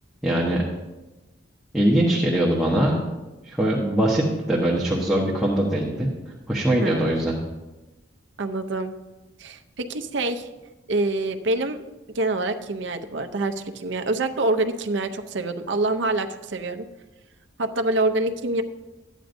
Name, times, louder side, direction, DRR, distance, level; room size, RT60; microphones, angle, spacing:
voice 1, 0.2-0.6 1.7-3.0 3.5-6.1 6.5-7.3, right 1 dB, ahead, -5 dB, 1.0 m, -22 dB
voice 2, 6.8-7.2 8.4-8.9 9.4-10.5 10.9-11.9 12.1-16.8 17.6-18.6, right 2 dB, 65° right, 7 dB, 0.6 m, -26 dB
13.0 x 9.1 x 2.6 m, 1.1 s
head